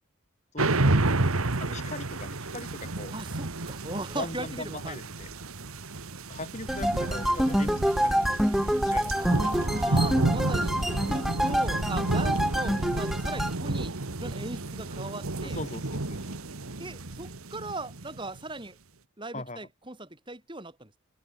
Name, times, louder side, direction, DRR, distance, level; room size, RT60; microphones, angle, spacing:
voice 1, 0.5-1.3 1.6-3.2 4.1-5.3 6.2-9.1 9.4-9.5 15.4-16.4 19.3-19.6, left 2 dB, 30° left, 5.8 m, -40 dB
sound 1, 0.6-18.4, right 2 dB, 80° right, 1.7 m, -31 dB
voice 2, 3.1-5.0 9.1-15.6 16.8-18.8 19.2-20.9, right 2 dB, 20° right, 3.4 m, -39 dB
sound 2, 6.7-13.5, equal, ahead, 0.4 m, -27 dB
open air
head